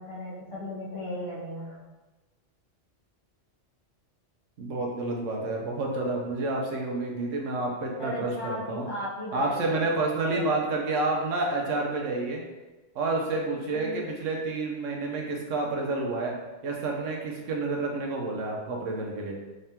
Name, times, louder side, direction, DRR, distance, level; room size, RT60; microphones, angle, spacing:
voice 1, 0.0-1.9 8.0-9.9 10.3-10.5 13.7-14.0, equal, 55° left, -8 dB, 1.6 m, -36 dB
voice 2, 4.6-8.9 9.3-12.4 12.9-16.4 16.6-19.4, right 2 dB, 85° right, 0 dB, 1.1 m, -29 dB
3.8 x 3.4 x 2.8 m, 1.1 s
omnidirectional pair, 1.3 m